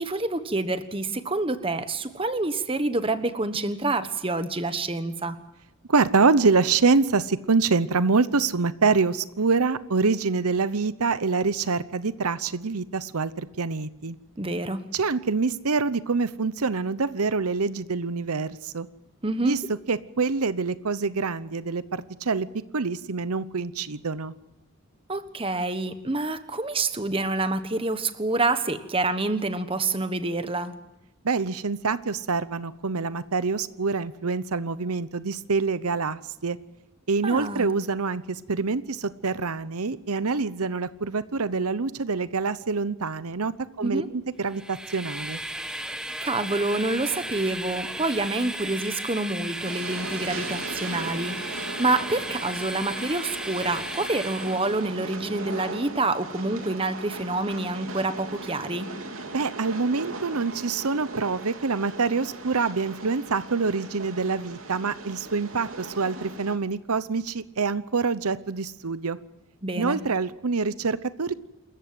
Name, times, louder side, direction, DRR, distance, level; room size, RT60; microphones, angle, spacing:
voice 1, 0.0-5.4 14.4-14.8 19.2-19.7 25.1-30.7 37.2-37.7 43.8-44.1 46.2-58.9 69.6-70.0, right 2 dB, 25° right, 11 dB, 1.3 m, -27 dB
voice 2, 5.9-14.2 14.9-18.9 19.4-22.5 22.7-24.3 31.2-36.6 37.1-45.4 59.3-69.2 69.8-71.3, right 4 dB, 90° right, 15 dB, 0.9 m, -26 dB
Train, 44.5-54.9, right 1 dB, 5° right, 1.3 m, -35 dB
Train 2, 49.6-66.6, right 2 dB, 70° right, 3.2 m, -38 dB
27.5 x 14.5 x 7.8 m, 0.94 s
head